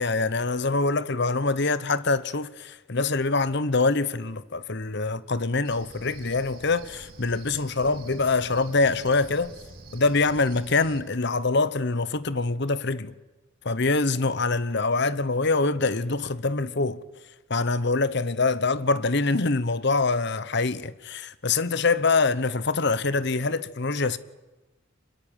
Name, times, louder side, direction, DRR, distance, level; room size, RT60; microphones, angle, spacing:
voice 1, 0.0-9.5 9.9-13.1 13.6-17.0 17.5-24.2, left 3 dB, 55° left, 1.1 m, -24 dB
Cricket, 5.6-11.0, right 2 dB, 50° right, 4.0 m, -46 dB
25.5 x 21.0 x 9.2 m
head